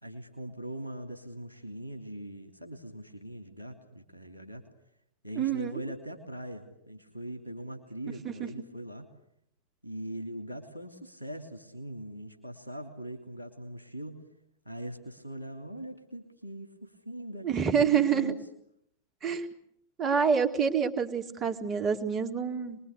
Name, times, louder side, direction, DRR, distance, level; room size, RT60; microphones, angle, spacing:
voice 1, 0.0-4.6 5.2-9.0 9.8-14.2 14.6-18.4, right 1 dB, 90° left, 5 dB, 2.8 m, -41 dB
voice 2, 5.4-5.7 8.2-8.3 17.4-18.3 19.2-19.5 20.0-22.8, right 7 dB, 30° right, 4 dB, 2.2 m, -27 dB
27.0 x 21.5 x 8.2 m, 0.73 s
figure-of-eight pair, 90°, 0 cm